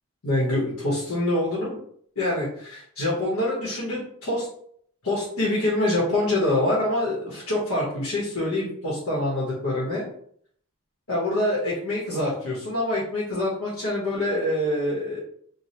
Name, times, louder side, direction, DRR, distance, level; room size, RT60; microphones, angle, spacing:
voice 1, 0.2-1.8 2.2-4.5 5.0-10.1 11.1-15.2, left 1 dB, 80° left, -6 dB, 1.0 m, -25 dB
3.1 x 2.1 x 2.8 m, 0.63 s
head